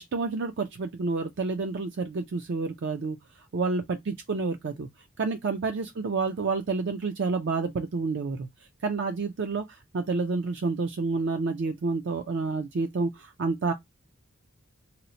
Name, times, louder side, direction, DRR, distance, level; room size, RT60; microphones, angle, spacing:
voice 1, 0.0-3.2 3.5-4.9 5.2-8.5 8.8-9.6 9.9-13.7, right 4 dB, 55° right, 0.4 m, -29 dB
2.8 x 2.0 x 3.8 m
head